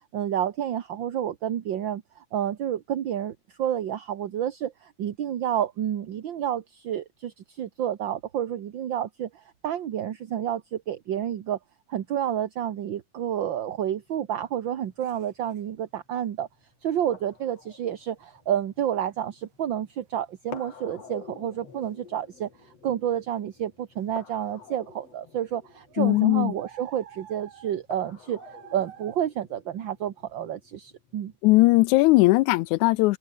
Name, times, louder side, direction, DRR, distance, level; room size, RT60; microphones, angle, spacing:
voice 1, 0.1-11.6 11.9-16.5 16.8-28.4 28.7-31.3, right 10 dB, 55° right, 1.5 m, -30 dB
sound 1, 13.8-31.4, left 6 dB, 60° left, 4.2 m, -49 dB
sound 2, 15.0-15.6 17.5-17.7 18.3-18.4 18.7-21.2 21.5-29.2, right 9 dB, 80° right, 3.4 m, -51 dB
voice 2, 26.0-26.5 31.4-33.2, left 20 dB, 90° left, 2.0 m, -19 dB
open air
omnidirectional pair, 3.3 m